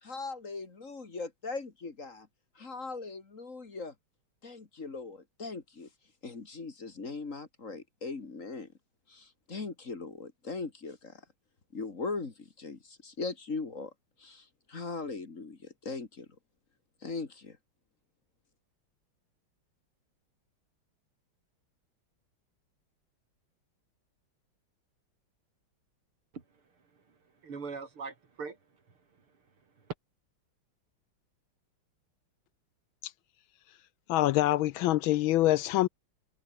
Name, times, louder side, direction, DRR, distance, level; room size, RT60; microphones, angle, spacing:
voice 1, 0.0-2.3 2.6-3.9 4.4-5.9 6.2-8.7 9.1-11.2 11.7-13.9 14.2-16.3 17.0-17.6, left 4 dB, 35° left, 2.5 m, -39 dB
voice 2, 26.3-28.6 28.9-29.3 29.8-29.9, right 5 dB, 80° right, 4.3 m, -43 dB
voice 3, 34.1-35.9, left 15 dB, 75° left, 1.3 m, -25 dB
omnidirectional pair, 2.4 m